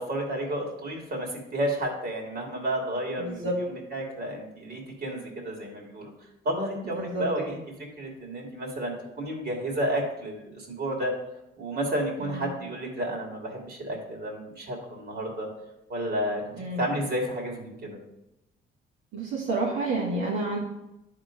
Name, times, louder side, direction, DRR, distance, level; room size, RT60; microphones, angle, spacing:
voice 1, 0.0-6.1 6.4-7.6 8.0-11.1 11.6-15.5 15.9-16.4 16.8-18.0, right 1 dB, 55° right, 0 dB, 2.7 m, -31 dB
voice 2, 3.2-3.5 6.9-7.3 12.2-12.4 16.6-16.8 19.1-20.6, right 2 dB, 90° right, -6 dB, 1.9 m, -29 dB
10.5 x 3.8 x 5.1 m, 0.90 s
cardioid pair, 90°, 20 cm